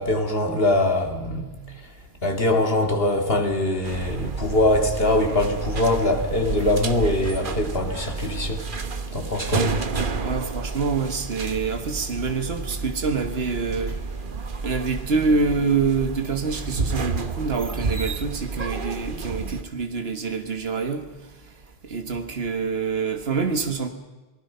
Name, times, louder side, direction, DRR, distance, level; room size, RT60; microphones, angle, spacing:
voice 1, 0.0-1.5 2.2-8.6 9.1-9.8, left 1 dB, 65° left, 2.6 m, -22 dB
sound 1, 3.8-19.6, right 4 dB, 55° right, 1.3 m, -30 dB
voice 2, 10.2-14.0 14.6-21.0 21.9-23.9, right 4 dB, 75° right, 1.8 m, -26 dB
28.0 x 19.5 x 5.7 m
omnidirectional pair, 1.0 m